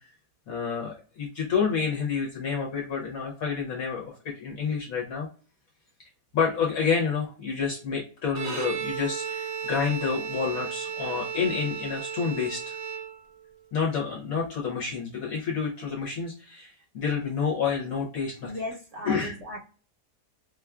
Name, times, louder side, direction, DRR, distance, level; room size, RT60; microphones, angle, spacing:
voice 1, 0.5-5.3 6.3-12.8 13.7-18.5 19.0-19.3, left 6 dB, 60° left, -2 dB, 1.1 m, -29 dB
Bowed string instrument, 8.3-13.5, right 7 dB, 75° right, 1.3 m, -34 dB
voice 2, 18.4-19.6, equal, 60° right, -1 dB, 1.0 m, -36 dB
4.3 x 2.3 x 2.3 m, 0.38 s
omnidirectional pair, 1.8 m